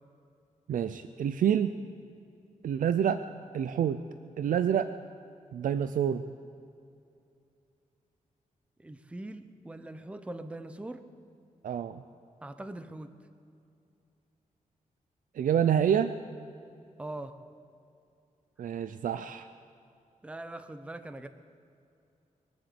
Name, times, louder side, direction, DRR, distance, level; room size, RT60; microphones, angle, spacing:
voice 1, 0.7-1.7 2.6-3.2 3.5-4.0 4.4-4.9 5.5-6.2 11.6-12.0 15.4-16.1 18.6-19.5, right 9 dB, 80° right, 11 dB, 0.5 m, -27 dB
voice 2, 8.8-11.1 12.4-13.2 17.0-17.4 20.2-21.3, right 2 dB, 10° right, 10 dB, 0.6 m, -41 dB
22.5 x 8.0 x 7.8 m, 2.6 s
wide cardioid pair, 140°, 14 cm